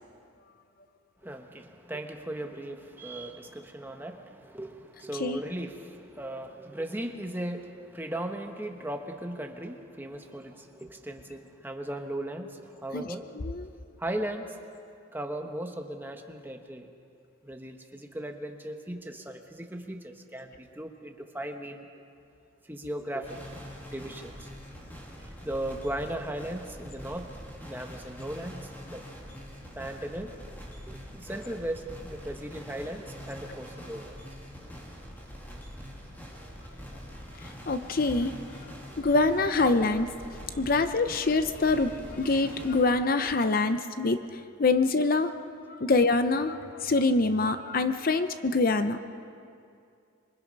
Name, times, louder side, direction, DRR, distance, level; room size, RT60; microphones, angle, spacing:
voice 1, 1.2-13.3 14.0-14.6 15.1-16.9 17.4-21.9 22.7-23.5 23.9-24.5 25.2-27.3 27.6-29.0 29.8-30.3 30.9-34.2 34.7-34.8 38.7-39.0, right 1 dB, 10° right, 4 dB, 1.2 m, -37 dB
sound 1, 23.2-42.8, equal, 10° left, 2.7 m, -44 dB
voice 2, 37.4-38.4 39.0-40.1 40.5-45.3 45.7-49.0, left 3 dB, 45° left, 9 dB, 0.7 m, -25 dB
26.0 x 23.0 x 5.4 m, 2.5 s
head